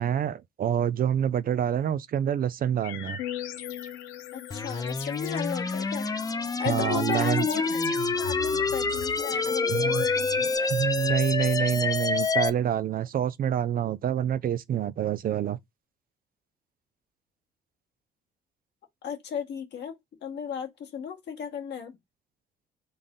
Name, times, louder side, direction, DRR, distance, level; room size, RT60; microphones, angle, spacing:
voice 1, 0.0-3.2 6.7-7.5 9.7-10.0 10.7-15.6, right 9 dB, 50° right, 0.5 m, -27 dB
sound 1, 2.8-10.6, left 10 dB, 85° left, 0.7 m, -39 dB
voice 2, 4.3-6.0 6.6-7.9 8.2-10.7 19.0-19.9 20.2-22.0, left 7 dB, 65° left, 1.7 m, -34 dB
sound 2, 4.5-12.5, left 4 dB, 20° left, 0.6 m, -27 dB
4.0 x 3.5 x 3.8 m
supercardioid pair, 60°, 19 cm